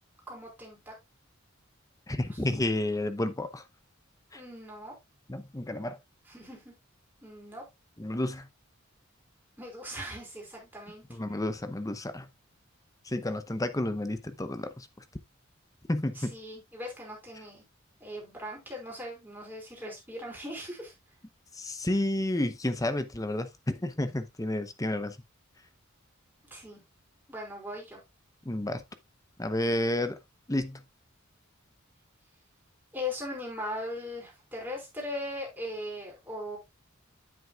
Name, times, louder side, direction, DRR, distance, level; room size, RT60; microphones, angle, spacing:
voice 1, 0.3-0.9 2.3-2.4 4.3-4.9 6.3-6.7 7.2-7.6 9.6-11.0 16.2-17.6 18.0-20.9 26.5-26.8 27.3-28.0 32.9-36.6, left 1 dB, 10° right, 5.1 m, -39 dB
voice 2, 2.1-3.6 4.3-4.4 5.3-6.0 8.0-8.5 11.1-12.3 13.1-14.9 15.9-16.3 21.6-25.2 28.4-28.8 29.4-30.2 30.5-30.8, left 1 dB, 15° left, 0.8 m, -31 dB
9.5 x 7.8 x 2.4 m
head